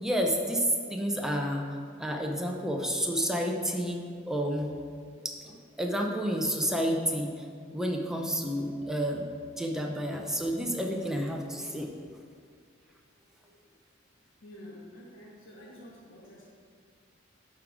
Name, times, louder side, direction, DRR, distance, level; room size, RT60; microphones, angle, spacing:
voice 1, 0.0-4.7 5.2-7.5 7.7-9.3 9.6-11.9, equal, 5° right, 1 dB, 0.6 m, -30 dB
voice 2, 14.4-16.4, left 1 dB, 70° left, -9 dB, 1.5 m, -48 dB
11.0 x 3.7 x 4.8 m, 2.1 s
head